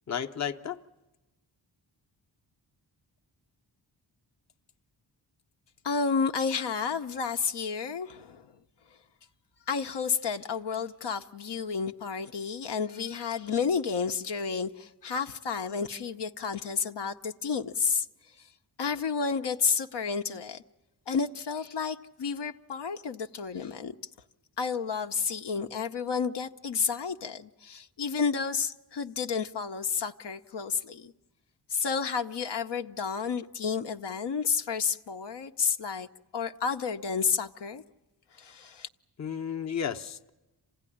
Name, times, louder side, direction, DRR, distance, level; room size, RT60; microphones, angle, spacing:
voice 1, 0.1-0.8 39.2-40.3, left 8 dB, 40° left, 0.8 m, -33 dB
voice 2, 5.8-8.5 9.7-18.1 18.4-18.5 18.8-20.6 21.1-23.9 24.6-31.1 31.7-36.1 36.3-37.8 38.4-38.9, left 6 dB, 70° left, 0.8 m, -31 dB
27.0 x 16.5 x 10.0 m
wide cardioid pair, 100°, 44 cm